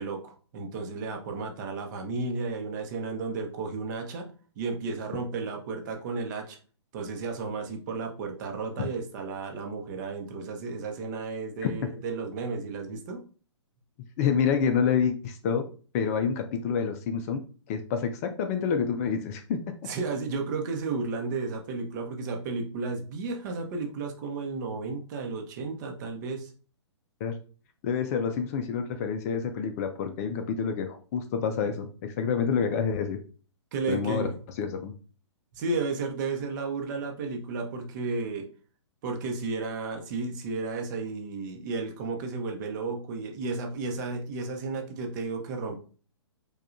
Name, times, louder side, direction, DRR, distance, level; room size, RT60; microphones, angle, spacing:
voice 1, 0.0-4.3 4.6-6.6 6.9-13.2 19.8-26.5 33.7-34.4 35.5-38.5 39.0-45.8, right 4 dB, 40° right, 3 dB, 0.8 m, -33 dB
voice 2, 14.2-15.6 15.9-17.4 17.7-19.6 27.2-27.4 27.8-33.2 33.9-34.3 34.6-34.9, left 6 dB, 30° left, 6 dB, 0.4 m, -28 dB
4.8 x 2.3 x 2.5 m, 0.39 s
hypercardioid pair, 135°, 15 cm